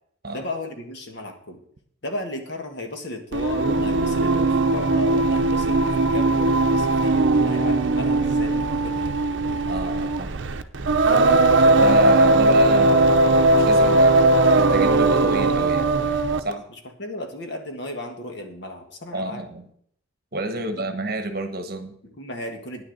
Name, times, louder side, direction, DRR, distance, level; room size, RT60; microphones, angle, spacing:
voice 1, 0.3-1.6 2.0-9.1 16.5-16.6 17.0-19.4 20.5-20.8 22.0-22.8, left 1 dB, 55° left, 4 dB, 1.7 m, -34 dB
Singing, 3.3-16.5, right 2 dB, 60° right, 0.7 m, -19 dB
voice 2, 9.7-10.4 11.8-16.6 19.1-19.7 20.3-22.0, right 2 dB, 45° right, 7 dB, 1.2 m, -30 dB
9.7 x 6.7 x 8.0 m, 0.65 s
head